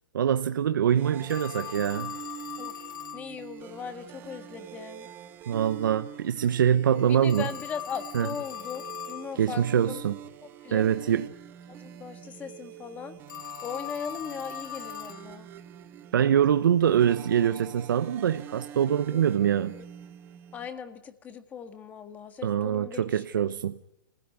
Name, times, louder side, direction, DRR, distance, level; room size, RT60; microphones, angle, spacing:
voice 1, 0.1-2.1 5.5-7.5 8.1-8.3 9.4-10.2 10.7-11.3 16.1-19.7 22.4-23.8, right 9 dB, 75° right, 1.0 m, -24 dB
sound 1, 0.9-20.7, right 10 dB, 20° right, 1.0 m, -45 dB
Telephone, 1.3-3.3 7.2-9.3 13.3-15.3, left 11 dB, 70° left, 1.4 m, -39 dB
voice 2, 3.1-5.1 7.1-10.0 10.6-10.8 11.7-13.1 13.6-15.5 19.1-19.2 20.5-23.2, left 7 dB, 15° left, 1.6 m, -39 dB
27.5 x 16.0 x 9.5 m
hypercardioid pair, 160°, 11 cm